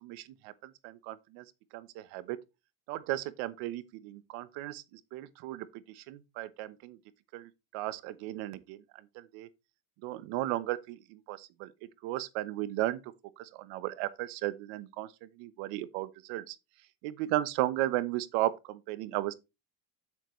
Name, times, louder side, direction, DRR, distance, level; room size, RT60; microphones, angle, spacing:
voice 1, 0.0-1.4 1.7-2.4 2.9-4.8 5.1-5.7 6.0-7.0 7.3-8.8 9.3-9.5 10.0-11.7 12.0-13.0 13.4-15.1 15.4-16.5 17.0-19.3, right 15 dB, 85° right, 1.1 m, -35 dB
9.5 x 8.4 x 3.1 m
cardioid pair, 180°, 48 cm